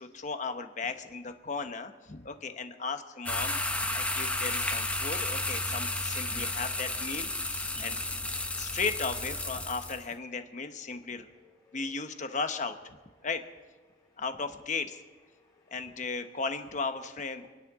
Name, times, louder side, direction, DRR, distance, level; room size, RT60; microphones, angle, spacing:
voice 1, 0.0-3.6 3.9-8.1 8.5-11.3 11.7-13.0 13.2-13.4 14.2-15.0 15.7-17.5, left 4 dB, 45° left, 8 dB, 1.0 m, -36 dB
sound 1, 3.3-10.1, left 2 dB, 5° left, 0.8 m, -32 dB
voice 2, 11.1-12.4 13.2-13.3 13.9-14.2 15.3-16.4 17.4-17.5, equal, 25° left, -4 dB, 3.6 m, -63 dB
28.0 x 10.5 x 3.7 m, 1.4 s
head